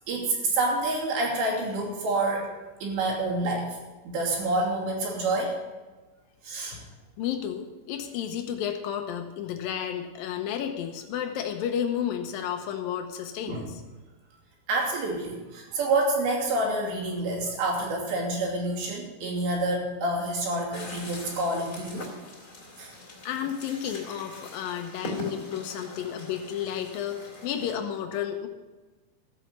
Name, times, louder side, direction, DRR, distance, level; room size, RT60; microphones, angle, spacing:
voice 1, 0.0-2.5 2.8-3.8 4.0-5.6 6.4-6.8 13.5-13.6 14.7-22.1 22.8-22.9, right 2 dB, 70° right, -2 dB, 4.8 m, -28 dB
voice 2, 7.2-13.8 23.3-28.5, left 9 dB, 80° left, 5 dB, 2.0 m, -32 dB
sound 1, 20.7-27.8, left 2 dB, 25° left, 3.1 m, -42 dB
15.0 x 7.7 x 6.8 m, 1.2 s
omnidirectional pair, 5.4 m